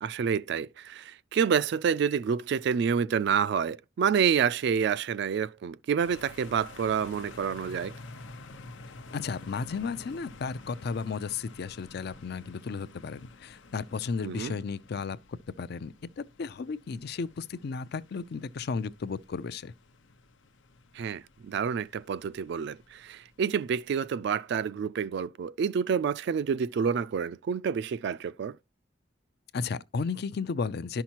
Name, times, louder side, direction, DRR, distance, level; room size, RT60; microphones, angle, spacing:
voice 1, 0.0-8.0 14.2-14.6 20.9-28.6, right 7 dB, 65° right, 0.3 m, -28 dB
sound 1, 6.0-24.6, left 3 dB, 90° left, 0.8 m, -51 dB
voice 2, 9.1-19.7 29.5-31.0, left 5 dB, 60° left, 0.4 m, -34 dB
11.5 x 5.8 x 2.9 m
head